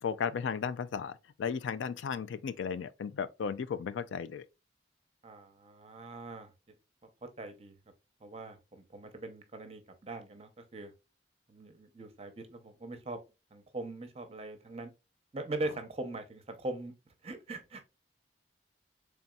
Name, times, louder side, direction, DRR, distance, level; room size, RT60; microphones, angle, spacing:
voice 1, 0.0-4.4, left 6 dB, 80° left, 0.3 m, -35 dB
voice 2, 5.2-6.5 7.2-7.7 8.2-10.9 11.5-13.2 13.5-14.9 15.3-16.9 17.2-17.9, right 2 dB, 35° right, 0.7 m, -41 dB
4.0 x 3.4 x 2.2 m
head